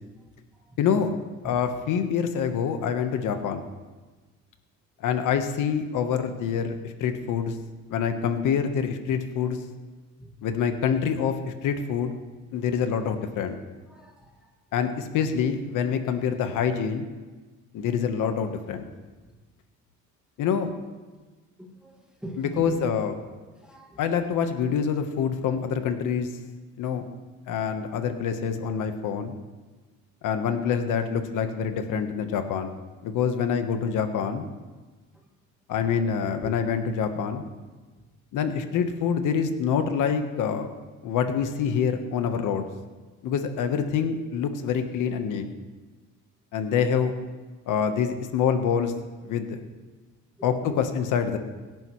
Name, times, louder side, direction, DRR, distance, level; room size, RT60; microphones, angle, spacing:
voice 1, 0.8-1.1 1.4-3.6 5.0-7.5 7.9-9.6 10.4-12.1 12.5-13.6 14.7-17.1 17.7-18.9 20.4-20.7 22.4-23.2 24.0-26.3 26.8-27.1 27.5-29.3 30.2-32.8 33.0-34.5 35.7-37.4 38.3-40.7 41.0-42.7 43.2-45.4 46.5-47.1 47.7-48.9 49.2-49.6 50.4-51.4, left 7 dB, 75° left, 7 dB, 1.2 m, -26 dB
voice 2, 13.9-14.3 21.6-21.9 22.2-22.8 23.6-24.0 36.4-36.5 50.4-50.8, right 1 dB, 5° right, -1 dB, 2.0 m, -39 dB
23.0 x 10.5 x 3.2 m, 1.3 s
cardioid pair, 160°, 31 cm